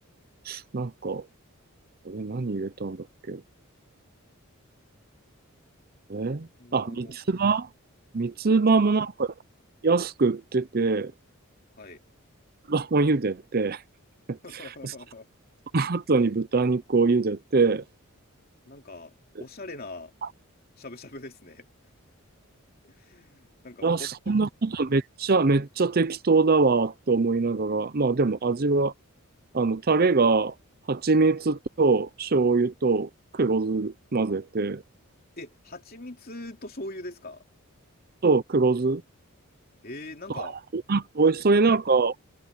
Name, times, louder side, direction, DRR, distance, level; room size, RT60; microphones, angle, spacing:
voice 1, 0.5-1.2 2.0-3.4 6.1-7.7 8.1-9.3 9.8-11.1 12.7-13.8 14.3-14.9 15.7-17.8 23.8-28.9 29.5-30.5 30.9-34.8 38.2-39.0 40.3-42.2, right 3 dB, 45° right, 0.6 m, -24 dB
voice 2, 6.6-7.1 8.9-9.0 11.8-12.0 14.4-15.3 18.7-19.1 19.4-20.1 20.8-21.7 22.8-24.3 35.4-37.4 39.8-40.6, left 2 dB, 45° left, 3.2 m, -42 dB
head